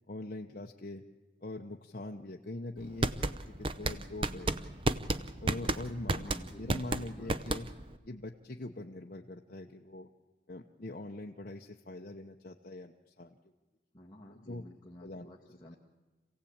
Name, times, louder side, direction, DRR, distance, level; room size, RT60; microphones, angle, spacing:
voice 1, 0.1-1.0 1.4-4.8 5.4-7.7 8.0-10.1 10.5-13.4 14.3-14.6 15.0-15.3, left 2 dB, 50° left, 1 dB, 0.9 m, -43 dB
sound 1, 2.8-8.0, right 2 dB, 30° right, 0.6 m, -32 dB
voice 2, 6.1-7.4 13.9-15.8, left 1 dB, 20° left, -4 dB, 1.7 m, -52 dB
26.5 x 16.5 x 8.7 m, 1.2 s
head